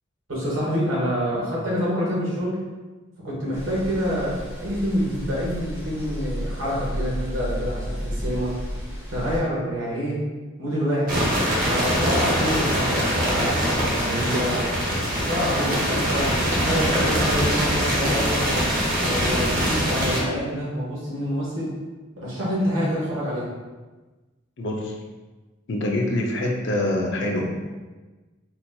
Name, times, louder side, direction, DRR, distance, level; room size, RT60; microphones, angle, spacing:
voice 1, 0.3-2.6 3.2-8.5 9.1-10.2 10.6-14.8 15.1-18.5 19.0-21.7 22.2-23.5, equal, 85° right, -6 dB, 1.4 m, -27 dB
sound 1, 3.5-9.4, equal, 15° right, 0.8 m, -32 dB
sound 2, 11.1-20.2, equal, 45° right, 0.8 m, -23 dB
voice 2, 24.6-25.0 25.7-27.5, left 1 dB, 60° left, 0 dB, 0.5 m, -25 dB
4.3 x 2.8 x 2.2 m, 1.2 s
head